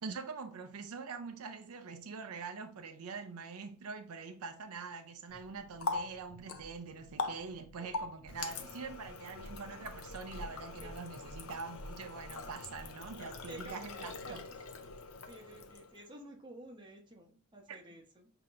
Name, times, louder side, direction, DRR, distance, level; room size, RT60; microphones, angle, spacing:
voice 1, 0.0-14.4 17.7-17.8, right 5 dB, 80° right, 0.5 m, -44 dB
Water tap faucet, 5.3-16.1, left 3 dB, 70° left, 0.6 m, -43 dB
voice 2, 7.8-8.1 10.8-10.9 13.4-14.6 15.2-18.3, right 1 dB, 20° right, 0.9 m, -52 dB
5.8 x 2.8 x 2.5 m
head